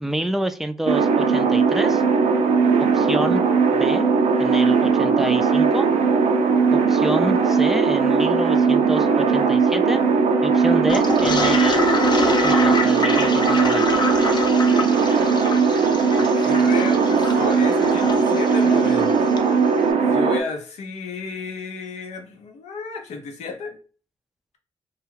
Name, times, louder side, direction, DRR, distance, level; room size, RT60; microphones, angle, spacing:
voice 1, 0.0-2.0 2.8-3.4 3.7-4.1 4.4-5.9 6.7-10.0 10.4-11.8 12.4-14.0, right 1 dB, 5° right, 0.4 m, -28 dB
sound 1, 0.9-20.4, right 5 dB, 85° right, 0.4 m, -19 dB
Toilet flush, 10.9-19.5, left 3 dB, 40° left, 0.6 m, -26 dB
voice 2, 16.3-19.4 20.1-23.8, left 4 dB, 85° left, 0.6 m, -32 dB
2.3 x 2.2 x 3.2 m
supercardioid pair, 45°, 11 cm